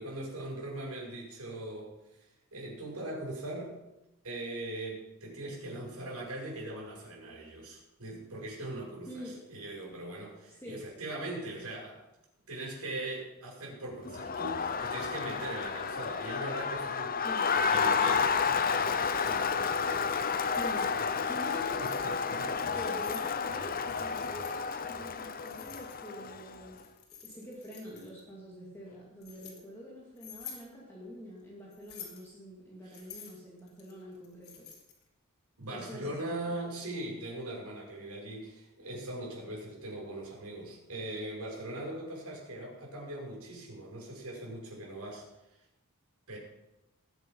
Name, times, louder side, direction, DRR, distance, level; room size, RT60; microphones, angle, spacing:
voice 1, 0.0-3.7 4.2-12.0 12.5-17.3 17.5-20.4 20.9-21.4 21.8-22.9 32.8-33.0 35.6-45.2 45.5-45.6 46.3-46.4, right 1 dB, 85° right, -3 dB, 6.4 m, -41 dB
voice 2, 9.1-9.4 10.6-10.9 17.2-17.5 20.6-21.9 22.6-26.9 27.2-34.7 35.7-36.6, equal, 10° left, -6 dB, 2.6 m, -46 dB
Crowd, 14.1-26.6, left 6 dB, 40° left, 0.8 m, -31 dB
Keys jangling, 19.9-20.8 21.5-22.1 22.7-23.3 23.9-24.6 25.4-26.3 26.7-28.2 28.8-29.6 30.2-30.7 31.7-32.3 32.9-35.0, left 8 dB, 80° left, 3.3 m, -49 dB
20.5 x 8.0 x 5.6 m, 0.93 s
head